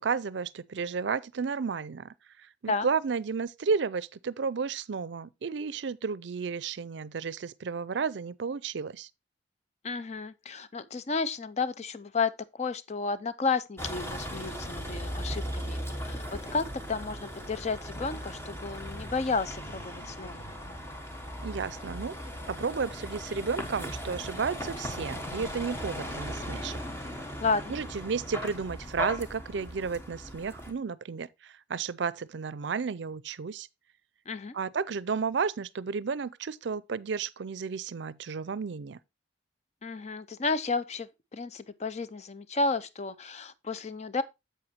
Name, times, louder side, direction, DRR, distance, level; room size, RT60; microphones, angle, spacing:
voice 1, 0.0-2.1 2.6-9.1 21.4-22.2 22.5-26.8 27.7-33.7 34.5-39.0, right 5 dB, 70° right, 0.5 m, -32 dB
voice 2, 9.8-20.4 27.4-27.8 34.3-34.6 39.8-44.2, left 4 dB, 35° left, 0.5 m, -32 dB
Vehicle, 13.8-30.7, equal, 15° left, 1.1 m, -38 dB
7.9 x 7.8 x 3.0 m
head